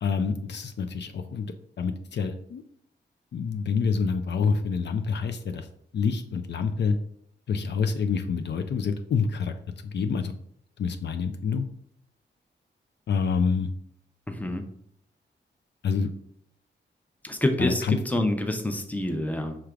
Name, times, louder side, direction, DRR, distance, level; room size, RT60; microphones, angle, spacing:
voice 1, 0.0-1.5 1.8-2.6 3.3-5.7 5.9-7.0 7.5-9.5 9.9-10.3 10.8-11.7 13.1-13.7 15.8-16.1 17.6-18.0, left 5 dB, 65° left, 7 dB, 0.4 m, -27 dB
voice 2, 14.3-14.6 17.2-19.6, left 1 dB, 10° left, 6 dB, 0.6 m, -27 dB
5.8 x 3.2 x 2.4 m, 0.67 s
cardioid pair, 80°, 20 cm